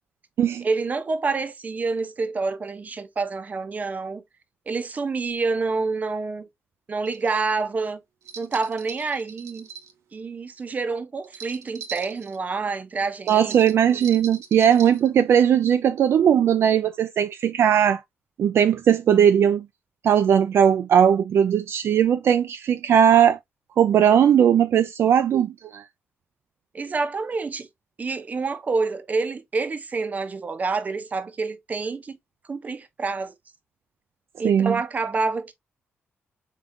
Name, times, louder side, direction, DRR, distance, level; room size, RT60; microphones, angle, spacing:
voice 1, 0.6-4.2 4.7-6.5 6.9-8.0 8.4-9.7 10.1-13.5 26.7-27.7 28.0-32.2 32.5-33.3 34.4-35.5, right 4 dB, 35° right, 0.7 m, -27 dB
sound 1, 7.0-7.4 8.2-9.9 11.2-12.4 13.3-15.1, right 7 dB, 85° right, 0.8 m, -40 dB
voice 2, 13.3-18.0 18.4-19.6 20.0-23.4 23.8-25.8 34.4-34.8, right 9 dB, 65° right, 0.3 m, -18 dB
3.7 x 3.6 x 2.5 m
cardioid pair, 105°, 5 cm